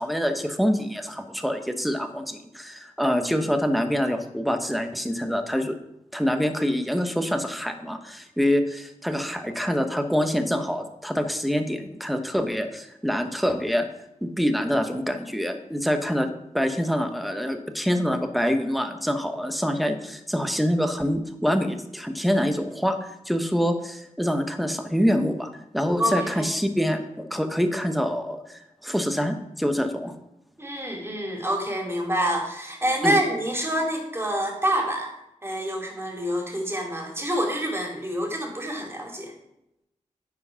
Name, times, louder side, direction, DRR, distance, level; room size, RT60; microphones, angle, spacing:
voice 1, 0.0-5.7 6.1-13.8 14.2-16.3 16.5-30.1 33.0-33.2, equal, ahead, 7 dB, 1.1 m, -26 dB
voice 2, 26.0-26.5 30.6-35.1 35.4-39.3, equal, 20° right, 1 dB, 2.6 m, -27 dB
9.5 x 4.8 x 5.7 m, 0.85 s
cardioid pair, 60°, 13 cm